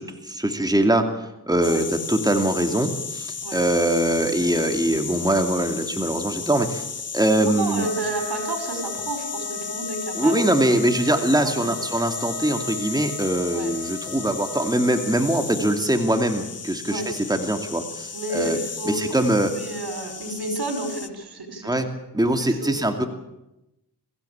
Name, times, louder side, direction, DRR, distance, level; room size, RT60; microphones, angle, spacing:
voice 1, 0.0-6.8 7.1-7.9 10.1-17.0 17.3-18.6 18.9-19.5 21.6-21.9 22.1-23.1, right 1 dB, 10° right, 5 dB, 2.5 m, -22 dB
sound 1, 1.6-21.1, left 5 dB, 40° left, 1.2 m, -34 dB
voice 2, 7.4-10.4 10.9-11.8 13.5-13.7 16.8-17.1 18.1-19.1 19.4-21.9 22.4-23.1, right 2 dB, 80° right, 5 dB, 5.1 m, -31 dB
Trumpet, 7.8-15.1, left 3 dB, 65° left, 1.7 m, -38 dB
23.0 x 15.0 x 8.8 m, 0.94 s
cardioid pair, 65°, 38 cm